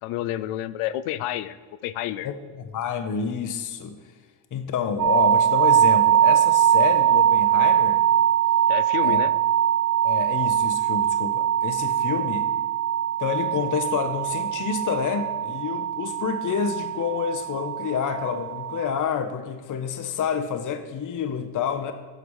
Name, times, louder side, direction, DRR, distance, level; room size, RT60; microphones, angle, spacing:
voice 1, 0.0-1.6 1.8-2.3 8.7-9.3, left 13 dB, 85° left, 15 dB, 0.6 m, -29 dB
voice 2, 2.2-4.0 4.5-8.0 9.0-9.2 10.0-12.5 13.2-21.9, left 7 dB, 40° left, 8 dB, 0.7 m, -28 dB
sound 1, 5.0-19.0, right 10 dB, 40° right, 0.7 m, -22 dB
8.0 x 4.8 x 5.4 m, 1.5 s
cardioid pair, 85°, 50 cm